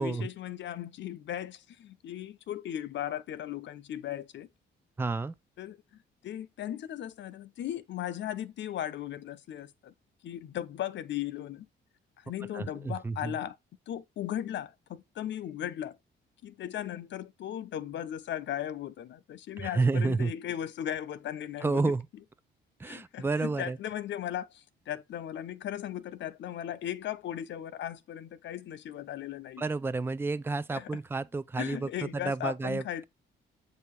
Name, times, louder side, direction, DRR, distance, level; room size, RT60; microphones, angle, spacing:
voice 1, 0.0-4.5 5.6-5.8 6.2-9.9 10.2-11.7 12.2-13.6 13.9-16.0 16.4-21.8 22.8-29.6 30.7-30.9 31.6-33.0, left 11 dB, 65° left, 0.8 m, -37 dB
voice 2, 5.0-5.3 12.5-13.4 19.6-20.3 21.6-22.1 22.8-23.8 29.6-33.0, right 3 dB, 10° right, 0.5 m, -30 dB
7.9 x 2.8 x 4.7 m
cardioid pair, 90°, 20 cm